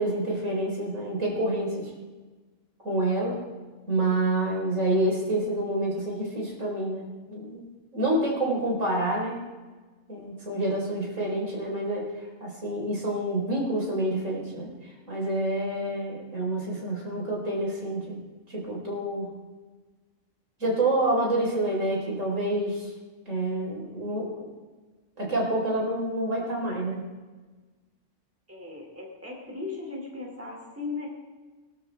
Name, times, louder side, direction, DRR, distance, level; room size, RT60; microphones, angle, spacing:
voice 1, 0.0-1.9 2.8-3.4 3.9-7.6 7.9-9.4 10.1-12.1 12.4-14.7 15.1-18.2 18.5-19.3 20.6-22.8 23.3-24.5 25.2-27.0, right 1 dB, 85° right, -2 dB, 4.8 m, -28 dB
voice 2, 28.5-31.1, left 4 dB, 10° right, -1 dB, 2.8 m, -37 dB
22.0 x 12.5 x 3.5 m, 1.3 s
omnidirectional pair, 1.3 m